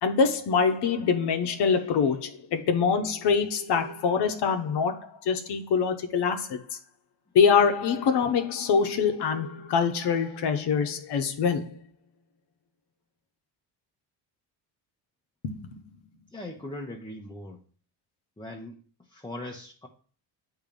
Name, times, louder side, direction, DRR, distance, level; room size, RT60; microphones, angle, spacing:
voice 1, 0.0-6.6 7.3-11.8 15.4-15.8, left 6 dB, 65° left, 0.9 m, -24 dB
voice 2, 16.3-17.6 18.4-18.8 19.1-19.9, left 1 dB, 10° left, 0.8 m, -39 dB
7.0 x 2.9 x 5.2 m
cardioid pair, 90°, 44 cm